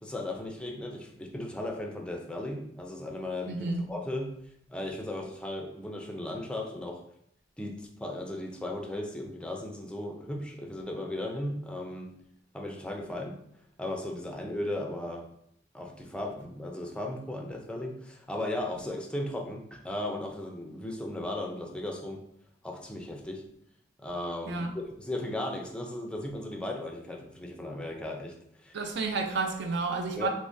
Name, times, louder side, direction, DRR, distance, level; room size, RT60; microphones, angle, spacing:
voice 1, 0.0-4.4 4.7-7.0 7.6-12.1 12.5-13.4 13.8-15.3 15.7-22.2 22.6-23.4 24.0-28.3 28.6-28.8 30.2-30.3, left 1 dB, 5° left, 1 dB, 0.4 m, -36 dB
voice 2, 3.5-3.8 24.5-24.7 28.7-30.3, right 3 dB, 65° right, 3 dB, 0.5 m, -30 dB
3.5 x 3.1 x 2.6 m, 0.73 s
head